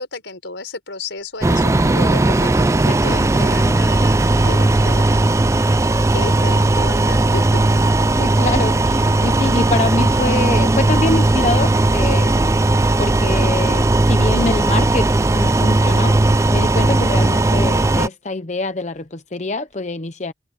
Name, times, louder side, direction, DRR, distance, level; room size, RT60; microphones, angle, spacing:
voice 1, 0.0-5.5 5.9-7.8, left 3 dB, 90° left, 4.9 m, -32 dB
sound 1, 1.4-18.1, right 2 dB, 15° right, 0.3 m, -16 dB
sound 2, 1.4-5.6 6.3-6.6 8.4-8.8 10.5-10.6 11.1-11.5 11.9-12.2 13.6-14.0 15.6-15.8 17.3-17.4 19.0-19.1 19.7-19.8, right 1 dB, 40° right, 2.0 m, -36 dB
voice 2, 8.2-12.6 13.0-16.1 16.5-20.3, left 2 dB, 40° left, 0.8 m, -25 dB
head